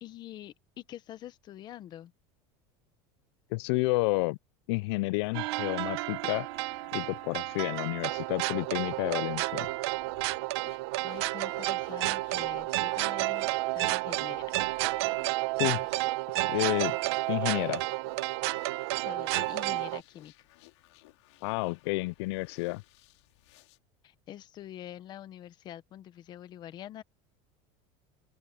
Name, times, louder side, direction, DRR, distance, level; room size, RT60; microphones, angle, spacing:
voice 1, 0.0-2.1 10.6-14.6 19.0-20.3 24.0-27.0, left 12 dB, 30° left, 1.0 m, -45 dB
voice 2, 3.5-4.4 4.7-6.5 6.9-9.7 15.6-15.9 16.5-17.0 17.3-17.9 21.4-22.8, left 24 dB, 70° left, 0.4 m, -30 dB
sound 1, 5.2-23.8, left 21 dB, 90° left, 4.3 m, -59 dB
sound 2, 5.3-20.0, right 20 dB, 70° right, 1.0 m, -31 dB
open air
cardioid pair, 170°, 14 cm